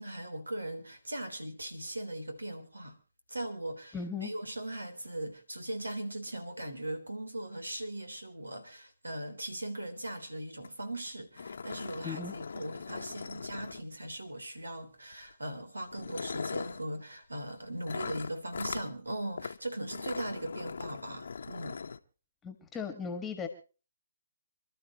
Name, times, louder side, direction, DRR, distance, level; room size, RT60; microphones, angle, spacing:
voice 1, 0.0-3.0 3.3-21.8, right 1 dB, 90° right, 3.6 m, -39 dB
voice 2, 3.9-4.3 12.0-12.3 22.4-23.5, left 5 dB, 10° left, 1.7 m, -37 dB
sound 1, 10.6-10.7 11.0-11.1 11.4-14.1 15.1-15.3 15.9-16.8 17.8-18.9 19.4-19.6 19.8-22.0, left 5 dB, 65° left, 1.1 m, -40 dB
27.5 x 12.5 x 3.0 m
figure-of-eight pair, 145°, 0 cm